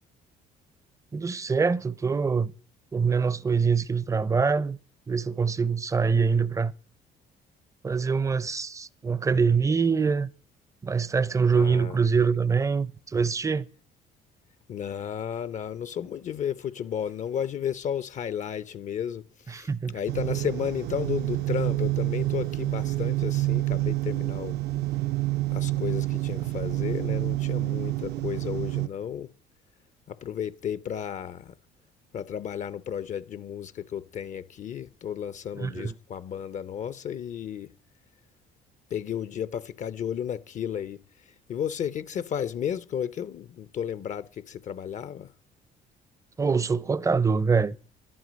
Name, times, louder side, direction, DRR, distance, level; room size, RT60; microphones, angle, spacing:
voice 1, 1.1-2.5 2.9-4.8 5.1-6.7 7.8-10.3 10.8-13.7 19.5-20.0 35.6-35.9 46.4-47.8, right 5 dB, 20° right, 0.5 m, -24 dB
voice 2, 11.5-12.0 14.7-24.6 25.5-29.3 30.1-31.5 32.1-37.7 38.9-45.3, left 9 dB, 45° left, 0.5 m, -33 dB
sound 1, 20.1-28.9, right 18 dB, 70° right, 0.6 m, -28 dB
11.0 x 11.0 x 5.1 m
cardioid pair, 110°, 17 cm